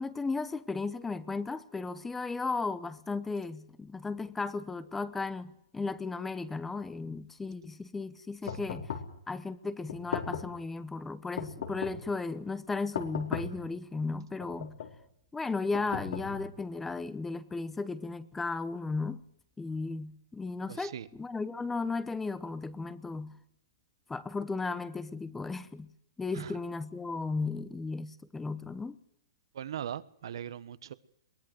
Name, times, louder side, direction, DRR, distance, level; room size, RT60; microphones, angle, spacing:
voice 1, 0.0-8.9 9.3-14.7 15.3-19.2 19.6-23.4 24.1-25.9 26.2-29.0, left 3 dB, 10° left, 0.9 m, -35 dB
sound 1, 8.5-9.2 9.9-10.6 11.4-12.1 12.9-13.7 14.4-15.0 15.7-16.6, left 7 dB, 70° left, 4.2 m, -37 dB
voice 2, 20.7-21.1 26.3-26.6 29.5-30.9, right 9 dB, 70° right, 1.3 m, -40 dB
22.5 x 18.0 x 7.8 m
hypercardioid pair, 155°, 3 cm